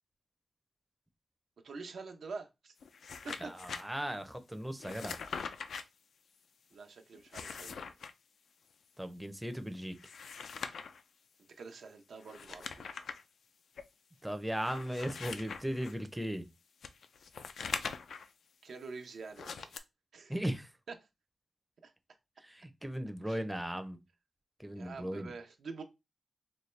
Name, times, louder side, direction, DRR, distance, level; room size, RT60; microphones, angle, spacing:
voice 1, 1.6-2.7 3.2-3.5 6.7-7.8 11.6-13.0 18.6-19.7 20.1-20.3 21.8-21.9 23.2-23.4 24.7-25.8, right 4 dB, 80° right, 0.6 m, -46 dB
sound 1, 2.8-3.8 4.8-5.8 7.1-8.1 9.9-11.0 12.2-13.2 13.8-13.9 14.6-15.9 16.8-18.3 19.3-19.8, left 5 dB, 80° left, 0.3 m, -42 dB
voice 2, 3.4-5.2 9.0-10.0 14.2-16.5 20.3-20.7 22.4-24.0 24.6-25.3, equal, 5° right, 0.5 m, -37 dB
4.1 x 2.2 x 3.2 m
cardioid pair, 85°, 0 cm